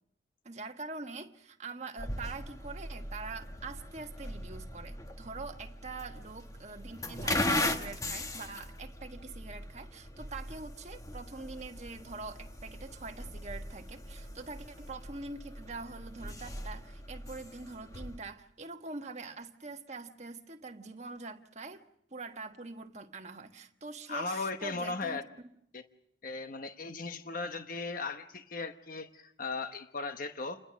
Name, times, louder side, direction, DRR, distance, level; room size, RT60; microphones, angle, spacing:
voice 1, 0.4-25.2, right 3 dB, 40° right, 1.4 m, -44 dB
sound 1, 2.0-18.2, left 1 dB, 20° left, 1.4 m, -39 dB
voice 2, 24.1-25.2 25.7-25.8 26.2-30.6, left 3 dB, 50° left, 1.1 m, -37 dB
29.0 x 21.5 x 6.4 m
head